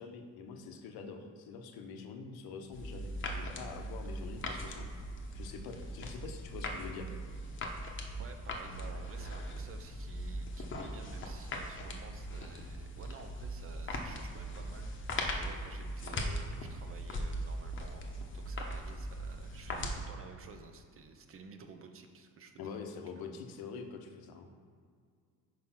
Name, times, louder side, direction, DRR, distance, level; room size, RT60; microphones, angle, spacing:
voice 1, 0.0-4.9 5.3-7.1 22.6-24.5, left 5 dB, 85° left, 5 dB, 0.8 m, -45 dB
sound 1, 2.7-20.0, equal, 35° left, 0.8 m, -40 dB
voice 2, 8.2-22.8, right 4 dB, 40° right, 6 dB, 0.6 m, -52 dB
4.8 x 4.4 x 5.6 m, 2.1 s
cardioid pair, 110°, 36 cm